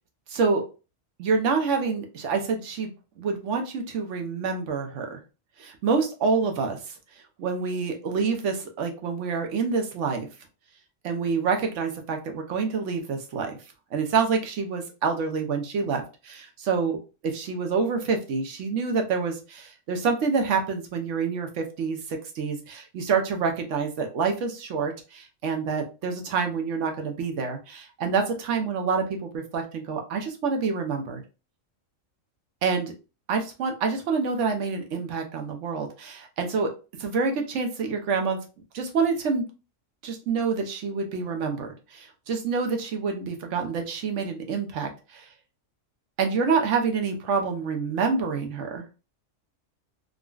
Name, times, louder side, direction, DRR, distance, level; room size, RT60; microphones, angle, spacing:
voice 1, 0.3-0.6 1.2-2.9 3.2-5.2 5.6-6.9 7.4-10.3 11.0-13.6 13.9-17.0 17.3-31.2 32.6-32.9 33.3-36.7 37.0-38.4 38.7-39.5 40.0-45.3 46.2-48.8, right 5 dB, 70° right, 4 dB, 1.0 m, -27 dB
3.7 x 2.1 x 2.3 m, 0.32 s
omnidirectional pair, 1.4 m